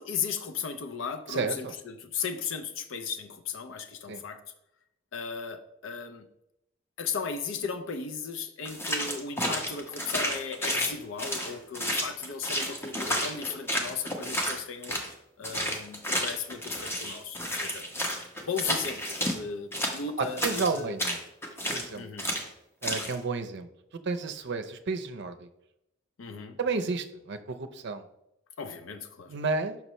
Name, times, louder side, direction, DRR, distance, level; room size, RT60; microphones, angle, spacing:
voice 1, 0.0-4.4 5.1-6.3 7.0-15.0 15.4-17.9 18.5-20.9 22.0-22.3 26.2-26.6 28.6-29.3, left 6 dB, 70° left, 8 dB, 0.5 m, -36 dB
voice 2, 1.3-1.7 4.1-4.2 20.2-21.2 21.7-22.1 22.8-23.7 24.0-25.5 26.6-28.0 29.3-29.8, right 4 dB, 60° right, 8 dB, 0.6 m, -31 dB
sound 1, 8.6-15.1 15.4-19.4 19.7-21.9 22.2-22.5 22.8-23.1, equal, 10° left, 0.8 m, -31 dB
5.8 x 5.4 x 3.0 m, 0.83 s
head